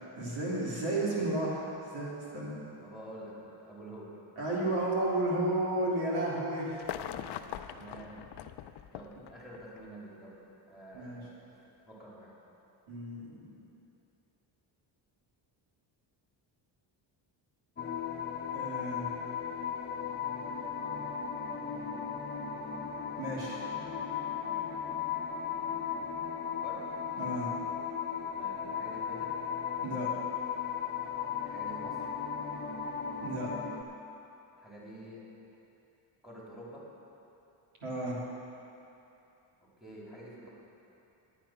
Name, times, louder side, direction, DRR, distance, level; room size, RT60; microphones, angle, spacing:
voice 1, 0.2-2.6 4.4-6.8 7.1-7.2 11.0-11.2 12.9-13.4 18.5-19.1 23.2-23.6 27.2-27.5 29.8-30.1 33.2-33.5 37.8-38.2, right 1 dB, 80° right, -6 dB, 3.2 m, -32 dB
voice 2, 2.8-4.1 7.7-8.3 8.9-10.4 10.7-11.6 11.9-12.3 26.5-26.8 28.3-29.3 31.4-32.1 34.6-35.2 36.2-36.8 39.6-40.5, right 1 dB, ahead, -6 dB, 3.3 m, -48 dB
sound 1, 6.7-9.9 10.9-11.0, left 11 dB, 55° left, 0.6 m, -42 dB
sound 2, 17.8-33.8, left 7 dB, 20° left, 0.8 m, -36 dB
11.5 x 9.2 x 5.9 m, 2.9 s
cardioid pair, 95°, 49 cm